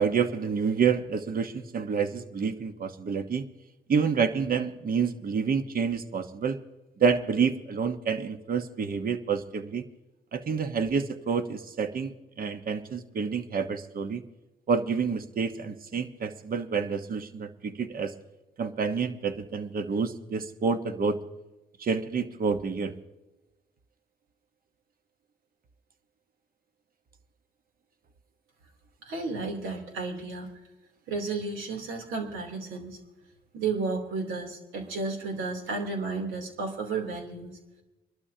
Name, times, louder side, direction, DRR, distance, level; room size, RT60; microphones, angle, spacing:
voice 1, 0.0-3.5 3.9-6.6 7.0-9.8 10.3-14.2 14.7-18.1 18.6-21.2 21.8-22.9, right 5 dB, 45° right, 8 dB, 1.1 m, -28 dB
voice 2, 29.0-30.5 31.1-33.0 33.5-37.6, right 4 dB, 80° right, 2 dB, 3.2 m, -33 dB
26.0 x 12.0 x 2.8 m, 1.0 s
cardioid pair, 90°, 20 cm